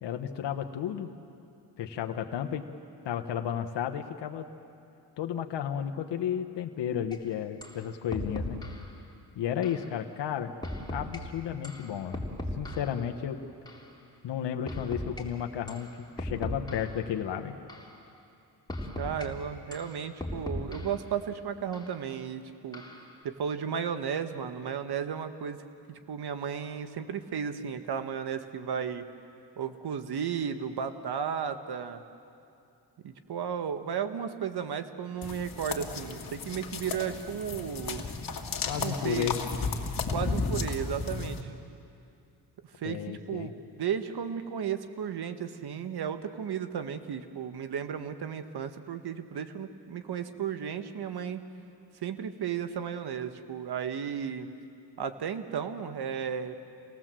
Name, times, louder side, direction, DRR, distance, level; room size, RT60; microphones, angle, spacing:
voice 1, 0.0-1.1 1.8-2.7 3.0-4.5 5.2-8.6 9.3-10.5 10.9-12.3 12.6-13.4 14.2-15.9 16.2-17.6 38.7-39.3 42.8-43.5, left 9 dB, 75° left, 4 dB, 1.2 m, -33 dB
sound 1, 7.1-7.2 7.6-7.8 8.1-8.9 9.6-9.8 10.6-11.2 11.6-13.0 13.7-13.8 14.7-15.2 15.7-15.9 16.2-17.0 17.7-17.9 18.7-19.3 19.7-21.0 21.7-21.9 22.7-23.1, left 1 dB, 10° left, 3.5 m, -37 dB
voice 2, 19.0-22.8 23.2-25.6 25.9-29.0 29.6-32.0 33.0-38.0 38.8-39.3 40.1-41.4 42.8-51.5 52.0-54.5 55.0-56.6, right 7 dB, 65° right, 9 dB, 1.5 m, -34 dB
sound 2, 35.2-41.4, left 4 dB, 50° left, 2.3 m, -34 dB
27.0 x 19.0 x 7.6 m, 2.6 s
cardioid pair, 80°, 42 cm